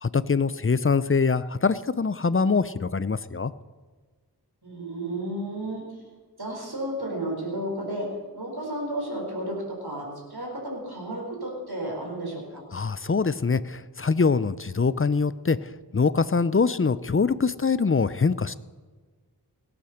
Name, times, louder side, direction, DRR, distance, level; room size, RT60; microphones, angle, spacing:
voice 1, 0.0-3.5 12.7-18.6, left 4 dB, 35° left, 16 dB, 0.5 m, -24 dB
voice 2, 4.6-5.8 6.4-8.1 8.3-12.6, right 1 dB, 65° right, -2 dB, 4.4 m, -32 dB
18.0 x 8.7 x 6.5 m, 1.4 s
wide cardioid pair, 40°, 39 cm